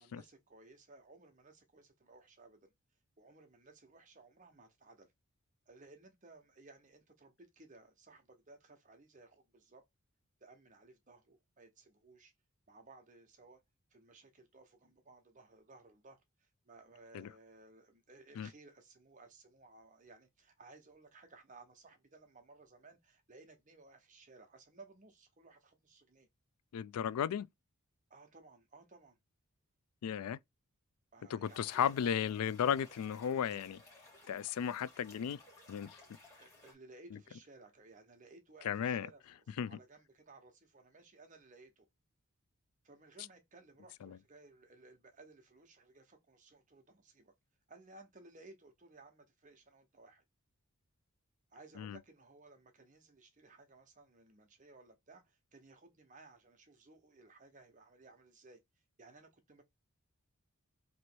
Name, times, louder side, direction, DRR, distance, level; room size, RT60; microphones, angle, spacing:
voice 1, 0.0-2.7 3.2-5.1 5.7-9.8 10.4-12.3 12.7-13.6 13.9-26.3 28.1-29.2 31.1-32.1 36.4-39.2 39.5-41.9 42.8-47.3 47.7-50.2 51.5-58.6 59.0-59.6, right 3 dB, 35° right, 0.9 m, -59 dB
voice 2, 26.7-27.5 30.0-30.4 31.3-33.8 34.3-35.4 35.7-36.0 38.6-39.1 39.6-39.8 44.0-44.2 51.8-52.0, left 8 dB, 90° left, 0.3 m, -35 dB
sound 1, 31.4-36.7, left 2 dB, 15° left, 1.8 m, -59 dB
3.1 x 3.0 x 4.4 m
head